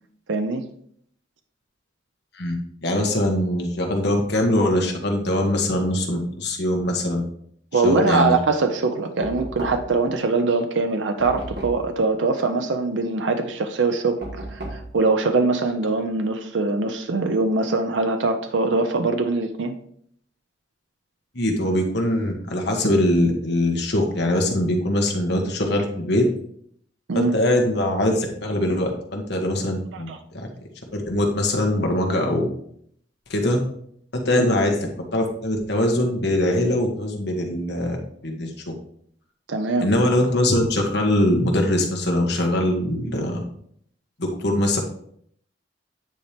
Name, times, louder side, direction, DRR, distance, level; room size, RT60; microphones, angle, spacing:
voice 1, 0.3-0.6 7.7-14.2 14.5-19.8 27.1-27.3 29.9-30.2 34.4-34.5 39.5-39.9, right 3 dB, 85° right, 0.6 m, -22 dB
voice 2, 2.8-7.2 7.7-8.3 21.3-26.2 27.1-30.5 30.9-32.5 33.3-33.6 34.1-34.8 35.1-38.0 38.2-38.5 39.8-43.4 44.2-44.8, left 1 dB, 65° left, 1.5 m, -22 dB
Knock, 9.2-10.1 11.2-11.9 14.2-14.9, right 1 dB, 60° right, 1.6 m, -33 dB
9.1 x 4.4 x 3.4 m
head